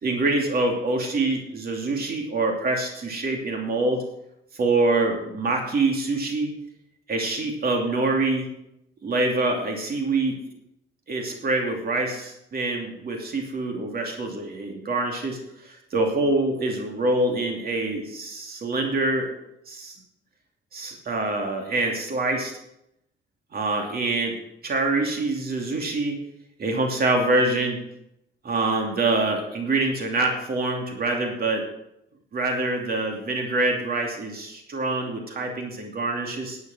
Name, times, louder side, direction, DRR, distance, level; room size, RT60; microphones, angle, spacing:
voice 1, 0.0-4.0 4.5-6.5 7.1-8.5 9.0-10.4 11.1-19.3 19.7-20.0 20.7-22.5 23.5-24.4 24.6-26.2 26.6-27.8 28.4-31.6 32.3-36.6, right 2 dB, 50° right, 2 dB, 2.8 m, -25 dB
11.5 x 8.6 x 6.2 m, 0.80 s
cardioid pair, 90°, 20 cm